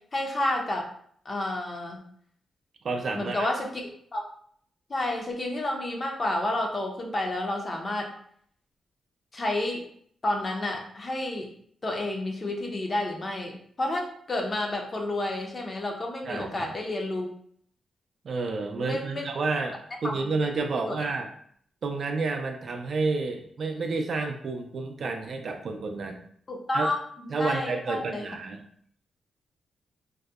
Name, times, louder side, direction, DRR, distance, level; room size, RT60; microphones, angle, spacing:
voice 1, 0.1-0.8 1.3-2.0 3.1-4.2 4.9-8.1 9.3-9.9 10.2-11.5 11.8-17.3 18.8-19.2 20.0-20.3 20.9-21.1 26.5-28.2, left 1 dB, 30° left, 1 dB, 0.4 m, -30 dB
voice 2, 2.8-3.5 16.2-16.7 18.2-21.3 21.8-26.2 26.7-26.9 27.3-28.6, right 3 dB, 55° right, 4 dB, 0.3 m, -30 dB
2.6 x 2.0 x 2.3 m, 0.63 s
wide cardioid pair, 140°, 0 cm